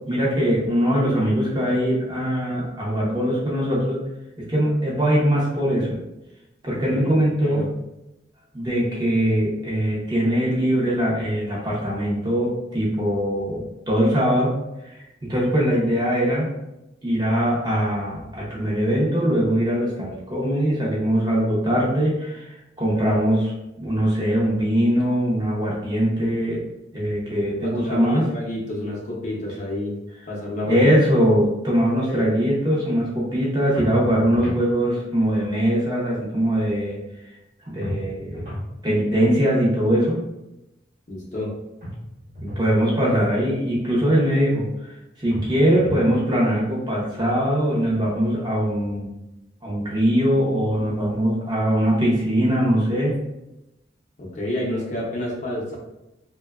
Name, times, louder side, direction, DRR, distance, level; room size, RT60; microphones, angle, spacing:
voice 1, 0.1-4.0 4.5-6.0 6.6-7.6 8.5-14.5 14.8-15.0 15.3-16.5 17.0-26.6 26.9-28.2 30.7-37.0 37.6-38.4 38.8-40.2 42.4-49.1 49.6-53.1, equal, 25° right, -5 dB, 0.6 m, -21 dB
voice 2, 6.7-7.7 27.6-29.9 30.3-30.9 32.1-32.2 41.1-41.5 54.2-55.8, left 1 dB, 40° left, -4 dB, 0.6 m, -29 dB
sound 1, 33.8-34.7 37.8-38.7 41.8-42.7 45.3-46.2, equal, 50° right, 1.0 m, -33 dB
2.6 x 2.2 x 2.3 m, 0.92 s
head